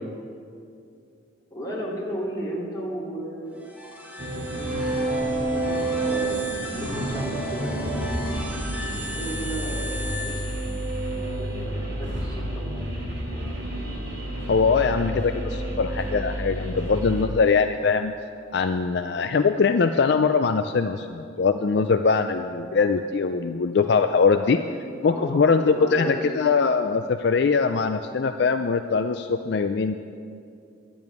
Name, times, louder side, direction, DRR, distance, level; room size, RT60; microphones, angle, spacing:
voice 1, 1.5-3.6 4.5-8.1 9.1-10.4 11.2-12.9 25.0-26.2, equal, 15° left, -6 dB, 2.7 m, -35 dB
sound 1, 3.5-11.2, left 1 dB, 10° right, 1.8 m, -36 dB
sound 2, 4.2-17.2, right 1 dB, 70° right, 3.5 m, -29 dB
voice 2, 14.5-18.1 18.5-24.6 25.0-29.9, left 5 dB, 55° left, 8 dB, 0.4 m, -22 dB
10.5 x 7.1 x 9.5 m, 2.4 s
head